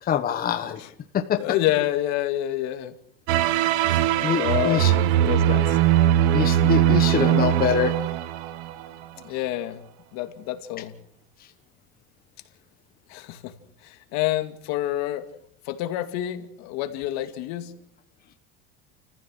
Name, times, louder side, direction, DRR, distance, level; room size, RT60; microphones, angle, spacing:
voice 1, 0.0-0.8 1.1-1.4 4.2-4.9 6.3-7.9, left 8 dB, 30° left, 6 dB, 1.3 m, -24 dB
voice 2, 1.3-2.9 3.4-3.5 3.8-4.1 4.3-5.8 9.2-9.8 10.1-10.9 13.1-13.5 13.8-15.3 15.7-17.7, left 14 dB, 60° left, 7 dB, 2.3 m, -28 dB
sound 1, 3.3-9.0, right 12 dB, 85° right, 1.3 m, -21 dB
30.0 x 15.0 x 6.4 m, 0.68 s
cardioid pair, 145°, 31 cm